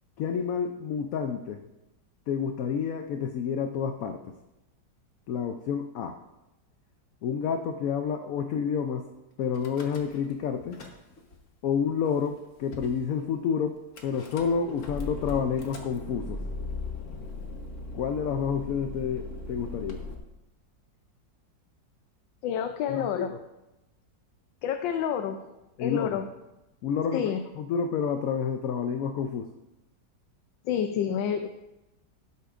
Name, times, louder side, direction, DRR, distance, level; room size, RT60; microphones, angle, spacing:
voice 1, 0.2-1.6 2.3-4.3 5.3-6.2 7.2-9.1 9.4-10.8 11.6-16.4 17.9-20.0 22.9-23.3 25.8-26.2 26.8-29.5, left 7 dB, 70° left, 6 dB, 0.8 m, -29 dB
Car / Engine starting / Idling, 9.5-10.3 10.6-11.4 12.0-12.1 12.3-12.4 12.7-13.0 14.0-20.1, left 2 dB, 45° left, 1.4 m, -38 dB
voice 2, 22.4-23.3 24.6-25.4 25.8-26.3 27.1-27.4 30.6-31.5, left 8 dB, 90° left, 6 dB, 1.3 m, -28 dB
16.5 x 8.3 x 2.5 m, 0.97 s
omnidirectional pair, 2.0 m